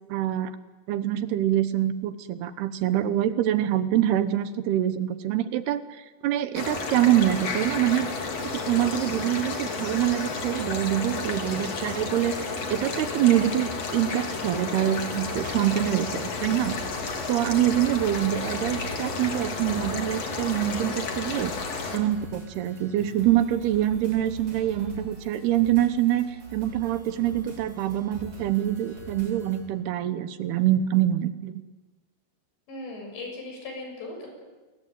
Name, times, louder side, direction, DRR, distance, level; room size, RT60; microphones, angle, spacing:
voice 1, 0.1-0.6 0.9-8.1 8.4-16.7 17.0-21.5 21.9-31.6, right 12 dB, 75° right, 12 dB, 3.0 m, -25 dB
sound 1, 6.5-22.0, left 4 dB, 40° left, 3.6 m, -32 dB
sound 2, 15.0-29.6, right 1 dB, 40° right, 8.4 m, -45 dB
voice 2, 32.7-34.3, left 2 dB, 80° left, 2 dB, 9.3 m, -38 dB
29.0 x 22.0 x 9.3 m, 1.2 s
omnidirectional pair, 4.9 m